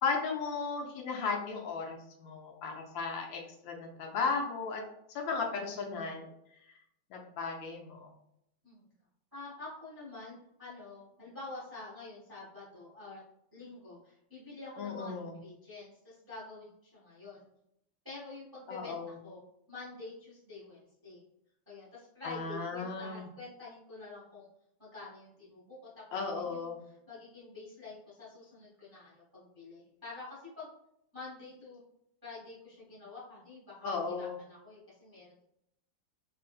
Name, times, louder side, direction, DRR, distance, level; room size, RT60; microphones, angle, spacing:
voice 1, 0.0-4.8 5.1-6.3 7.1-8.1 14.8-15.4 18.7-19.2 22.2-23.3 26.1-26.8 33.8-34.4, left 4 dB, 75° left, 1 dB, 1.3 m, -35 dB
voice 2, 9.3-13.2 13.5-17.5 18.0-19.4 19.7-21.2 21.7-24.5 24.8-26.0 26.4-30.7 31.1-31.8 32.2-35.4, left 3 dB, 20° right, -8 dB, 0.6 m, -48 dB
3.7 x 2.5 x 2.3 m, 0.78 s
omnidirectional pair, 2.2 m